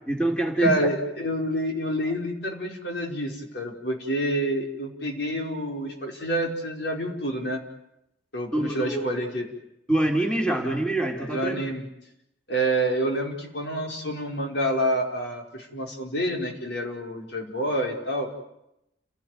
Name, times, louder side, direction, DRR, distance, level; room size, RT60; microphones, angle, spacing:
voice 1, 0.0-0.9 8.5-9.1 9.9-11.6, right 1 dB, 5° left, 2 dB, 3.3 m, -25 dB
voice 2, 0.6-7.6 8.3-9.5 11.3-11.9 12.5-18.3, right 1 dB, 65° left, 1 dB, 5.1 m, -28 dB
30.0 x 18.0 x 9.4 m, 0.84 s
head